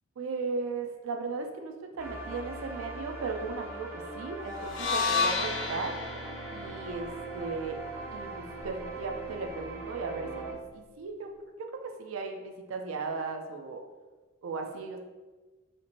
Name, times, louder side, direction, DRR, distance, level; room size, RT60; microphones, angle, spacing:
voice 1, 0.2-5.9 6.5-7.8 8.1-11.3 12.0-13.8 14.4-15.0, right 4 dB, 80° right, 4 dB, 0.4 m, -36 dB
sound 1, 2.0-10.5, right 2 dB, 10° right, 0.5 m, -40 dB
sound 2, 4.7-8.9, left 4 dB, 65° left, 0.4 m, -33 dB
4.3 x 2.9 x 2.5 m, 1.3 s
head